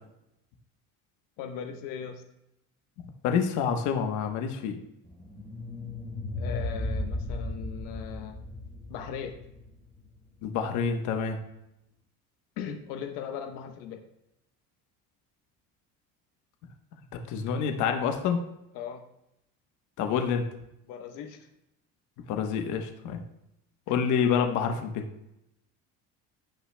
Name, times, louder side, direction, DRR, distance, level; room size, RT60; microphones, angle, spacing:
voice 1, 1.4-2.2 6.4-8.4 8.9-9.4 12.6-14.0 18.7-19.0 20.9-21.5, left 8 dB, 90° left, 5 dB, 1.0 m, -38 dB
voice 2, 3.2-4.8 10.4-11.4 17.3-18.4 20.0-20.5 22.3-23.2 23.9-25.0, left 7 dB, 65° left, 5 dB, 1.1 m, -27 dB
sound 1, 5.1-10.2, left 1 dB, 5° left, 3.1 m, -35 dB
16.0 x 5.8 x 2.2 m, 0.84 s
cardioid pair, 150°, 32 cm